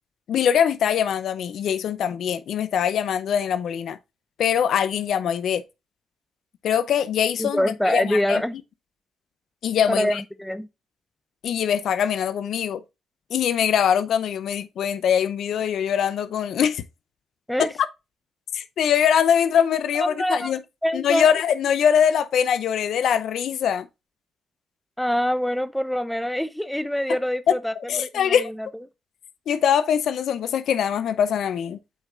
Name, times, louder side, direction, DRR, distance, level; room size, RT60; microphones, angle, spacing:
voice 1, 0.3-4.0 4.4-5.6 6.6-8.4 9.6-10.2 11.4-12.8 13.3-16.8 17.6-17.7 18.5-20.6 20.9-23.9 27.9-28.5 29.5-31.8, left 8 dB, 70° left, 0.6 m, -22 dB
voice 2, 7.4-8.6 9.9-10.7 17.5-17.7 20.0-20.5 20.8-21.3 25.0-28.7, equal, 5° left, 0.8 m, -25 dB
8.0 x 4.9 x 2.4 m
supercardioid pair, 55°, 0 cm